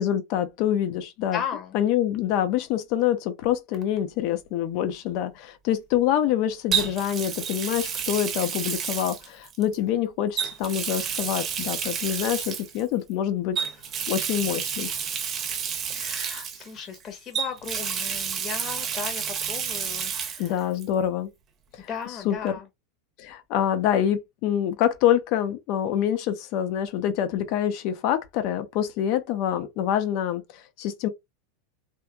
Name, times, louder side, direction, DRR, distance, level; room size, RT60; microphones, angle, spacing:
voice 1, 0.0-1.4 1.7-13.6 14.1-14.9 20.4-21.3 21.7-21.8 22.2-22.6 23.2-31.1, left 10 dB, 50° left, 0.8 m, -26 dB
voice 2, 1.3-1.8 15.9-20.6 21.9-22.6, left 7 dB, 35° left, 1.1 m, -36 dB
Water tap faucet, 3.7-4.0 6.7-9.8 10.3-12.8 13.6-17.0 17.3-20.5 20.8-20.9 22.5-22.6, right 7 dB, 35° right, 0.8 m, -30 dB
3.3 x 2.9 x 2.3 m
figure-of-eight pair, 85°, 0 cm